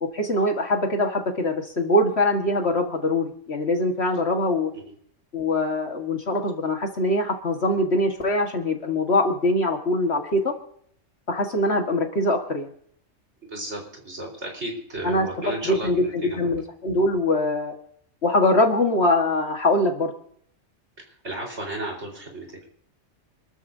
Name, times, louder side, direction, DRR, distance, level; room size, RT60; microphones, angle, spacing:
voice 1, 0.0-4.7 5.3-10.5 11.3-12.7 15.0-15.3 15.6-17.7 18.2-20.1, left 1 dB, 55° left, 3 dB, 2.1 m, -23 dB
voice 2, 13.4-16.5 21.2-22.5, right 1 dB, 60° right, -1 dB, 4.9 m, -34 dB
27.0 x 13.0 x 2.8 m, 0.64 s
omnidirectional pair, 1.3 m